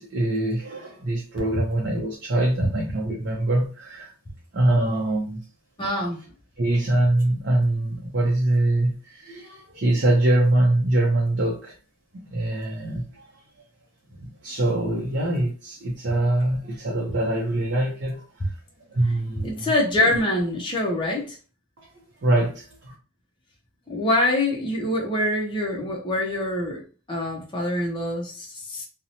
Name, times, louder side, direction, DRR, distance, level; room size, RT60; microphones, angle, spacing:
voice 1, 0.0-4.1 4.5-5.4 6.6-11.7 12.3-13.2 14.2-18.5 18.9-19.7 22.2-22.9, right 1 dB, 50° right, 0.5 m, -23 dB
voice 2, 5.8-6.2 19.4-21.4 23.9-26.8 27.1-28.9, left 1 dB, 20° left, 0.5 m, -25 dB
2.7 x 2.0 x 2.7 m
head